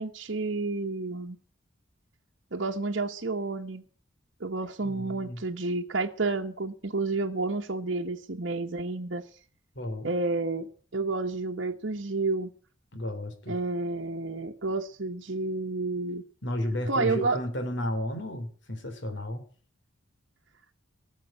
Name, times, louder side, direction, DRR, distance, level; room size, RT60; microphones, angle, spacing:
voice 1, 0.0-1.4 2.5-3.8 4.4-9.2 10.0-12.5 13.5-16.2 16.9-17.4, right 3 dB, 60° right, 1.1 m, -30 dB
voice 2, 4.8-5.4 9.7-10.1 12.9-13.6 16.4-19.4, left 1 dB, 60° left, 3.3 m, -33 dB
17.5 x 7.6 x 8.9 m
head